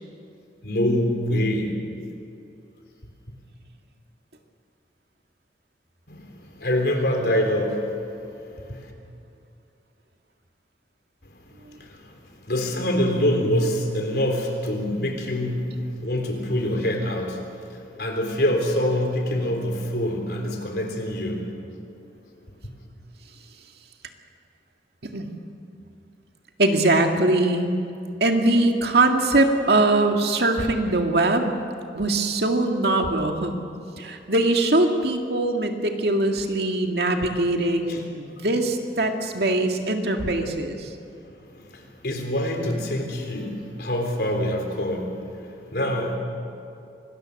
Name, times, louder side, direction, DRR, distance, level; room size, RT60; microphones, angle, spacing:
voice 1, 0.6-1.8 3.0-3.1 6.1-8.9 11.7-12.2 12.4-21.5 22.6-22.7 37.9-38.0 41.2-46.2, left 1 dB, 65° left, 2 dB, 3.6 m, -26 dB
voice 2, 26.6-27.7 28.2-31.6 31.9-33.5 34.0-40.9, right 2 dB, 70° right, 3 dB, 2.0 m, -22 dB
25.0 x 19.5 x 6.6 m, 2.6 s
head